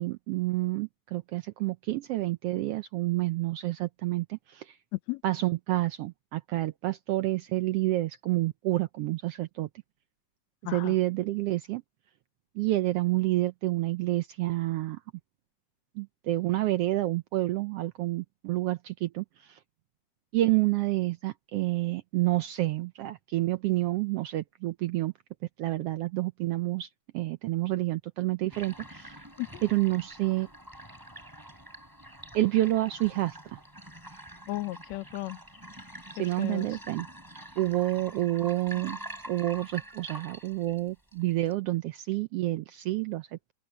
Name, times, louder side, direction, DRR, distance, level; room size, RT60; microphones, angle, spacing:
voice 1, 0.0-4.8 5.2-9.7 10.7-11.8 12.5-15.0 16.0-19.6 20.3-25.1 25.6-26.9 27.1-29.2 29.6-30.5 32.3-33.6 36.1-37.1 37.6-39.0 39.3-43.3, right 17 dB, 85° right, 1.3 m, -29 dB
voice 2, 10.7-11.0 29.4-29.6 34.5-35.4 36.4-36.8, left 19 dB, 75° left, 1.8 m, -34 dB
sound 1, 28.5-41.5, right 1 dB, 5° right, 6.1 m, -46 dB
open air
omnidirectional pair, 3.5 m